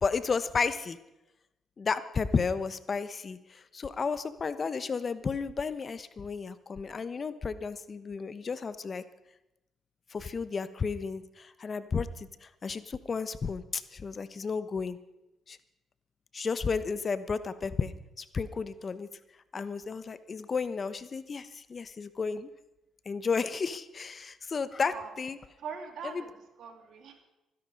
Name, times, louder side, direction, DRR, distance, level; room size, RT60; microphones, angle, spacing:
voice 1, 0.0-1.0 1.8-9.0 10.1-12.1 12.4-15.0 15.5-15.6 16.3-17.9 18.2-19.1 19.5-22.5 23.1-25.4 26.0-26.2, left 5 dB, 45° left, 13 dB, 1.0 m, -32 dB
voice 2, 25.6-26.3 26.6-27.2, right 6 dB, 70° right, 5 dB, 2.7 m, -42 dB
24.0 x 10.5 x 5.3 m, 0.94 s
supercardioid pair, 60°, 0 cm